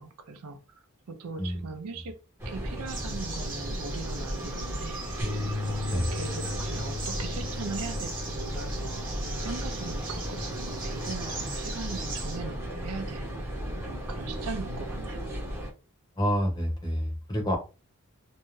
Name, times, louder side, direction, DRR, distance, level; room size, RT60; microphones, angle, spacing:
voice 1, 0.0-2.2 2.5-5.3 5.6-13.5 13.9-15.3, right 4 dB, 75° right, 8 dB, 0.5 m, -40 dB
sound 1, 2.4-15.7, equal, 10° right, 0.8 m, -35 dB
sound 2, 2.8-12.4, right 4 dB, 40° right, 1.0 m, -41 dB
sound 3, 5.2-11.5, left 3 dB, 75° left, 1.1 m, -37 dB
voice 2, 16.2-17.6, equal, 20° left, 1 dB, 0.9 m, -28 dB
2.5 x 2.2 x 3.1 m, 0.30 s
head